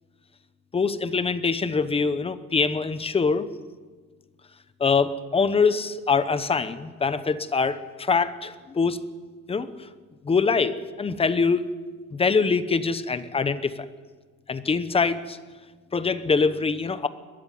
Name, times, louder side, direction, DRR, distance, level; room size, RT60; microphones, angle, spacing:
voice 1, 0.7-3.5 4.8-9.0 9.5-9.7 10.2-11.7 12.1-13.8 14.5-15.4 15.9-17.1, left 5 dB, 15° left, 12 dB, 0.9 m, -24 dB
21.5 x 14.0 x 9.4 m, 1.4 s
cardioid pair, 150°, 34 cm